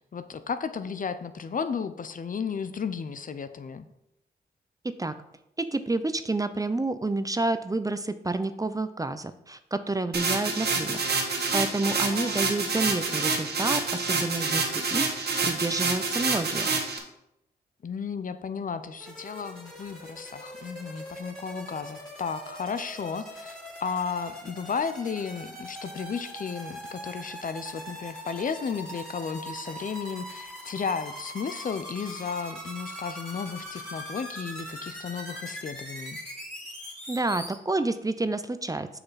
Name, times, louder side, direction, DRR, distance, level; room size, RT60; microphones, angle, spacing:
voice 1, 0.0-3.9 11.8-12.5 17.8-36.2, left 6 dB, 50° left, 11 dB, 0.6 m, -34 dB
voice 2, 5.6-16.7 37.1-38.9, right 2 dB, 20° right, 11 dB, 0.6 m, -29 dB
sound 1, 10.1-17.0, right 4 dB, 65° right, 1.4 m, -27 dB
sound 2, 19.0-37.6, equal, 5° left, 3.2 m, -41 dB
6.7 x 5.8 x 4.2 m, 0.81 s
cardioid pair, 50°, 18 cm